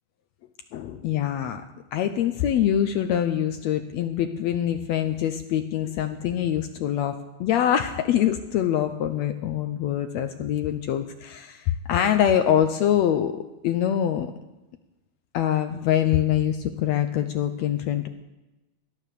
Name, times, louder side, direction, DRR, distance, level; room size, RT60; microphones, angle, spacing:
voice 1, 0.7-1.6 1.9-14.3 15.3-18.1, left 10 dB, 80° left, 7 dB, 1.6 m, -24 dB
16.5 x 11.5 x 6.7 m, 1.1 s
omnidirectional pair, 3.8 m